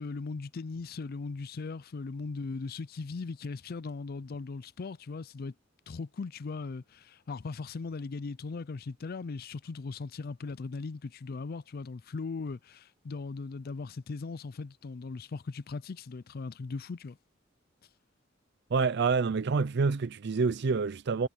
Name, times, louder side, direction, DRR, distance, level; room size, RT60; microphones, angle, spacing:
voice 1, 0.0-5.5 5.9-17.2, left 4 dB, 50° left, 0.4 m, -38 dB
voice 2, 18.7-21.3, right 4 dB, 60° right, 0.5 m, -27 dB
head